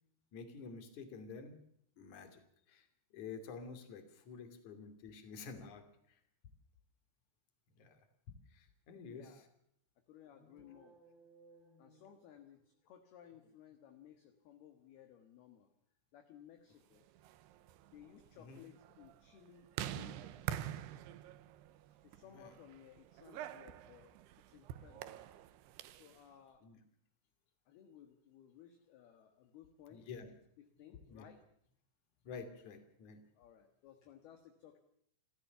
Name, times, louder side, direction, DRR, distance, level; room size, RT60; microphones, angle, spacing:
voice 1, 0.3-1.6 2.0-2.4 2.7-2.9 3.1-6.2 7.8-8.0 8.3-9.3 18.4-18.7 22.2-22.5 26.6-26.8 29.9-30.3 31.1-31.3 32.2-33.2, left 5 dB, 45° left, 8 dB, 3.5 m, -50 dB
voice 2, 9.0-9.4 10.1-11.0 11.8-15.7 16.1-17.1 17.9-19.7 19.9-21.0 22.0-24.1 24.5-25.2 25.9-26.7 27.7-30.1 30.6-31.4 33.4-34.8, left 9 dB, 65° left, 7 dB, 3.1 m, -59 dB
sound 1, 10.2-12.8, right 3 dB, 25° left, 5.2 m, -64 dB
sound 2, 17.1-26.2, right 11 dB, 75° right, 2.6 m, -46 dB
29.0 x 14.0 x 7.0 m, 0.70 s
omnidirectional pair, 5.6 m